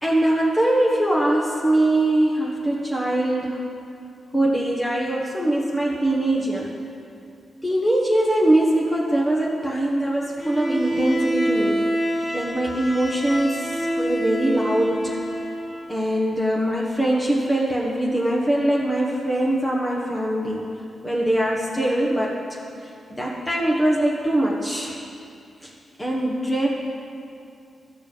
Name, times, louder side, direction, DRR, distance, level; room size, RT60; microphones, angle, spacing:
voice 1, 0.0-3.6 4.3-6.7 7.6-11.9 12.3-15.2 15.9-20.7 21.0-25.0 25.6-25.7 26.0-26.7, right 1 dB, 15° left, -4 dB, 1.2 m, -22 dB
Bowed string instrument, 10.4-16.0, right 1 dB, 35° left, 1.0 m, -27 dB
12.0 x 4.3 x 6.9 m, 2.6 s
cardioid pair, 55°, 0 cm